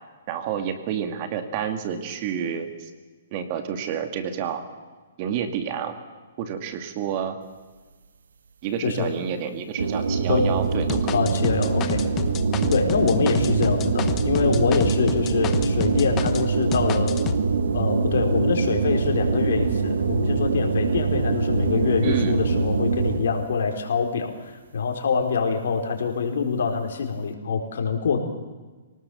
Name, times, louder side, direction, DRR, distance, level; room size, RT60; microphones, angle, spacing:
voice 1, 0.3-2.9 3.3-4.6 5.2-6.0 6.4-7.4 8.6-11.3 22.0-22.3, right 8 dB, 35° right, 8 dB, 2.3 m, -29 dB
sound 1, 9.8-23.4, right 4 dB, 85° right, 1.6 m, -24 dB
sound 2, 10.9-16.5 16.7-17.4, left 10 dB, 20° left, 1.1 m, -31 dB
voice 2, 11.1-12.0 12.7-17.2 17.7-28.2, left 5 dB, 70° left, 3 dB, 4.3 m, -25 dB
24.5 x 19.0 x 7.1 m, 1.3 s
hypercardioid pair, 155°, 0 cm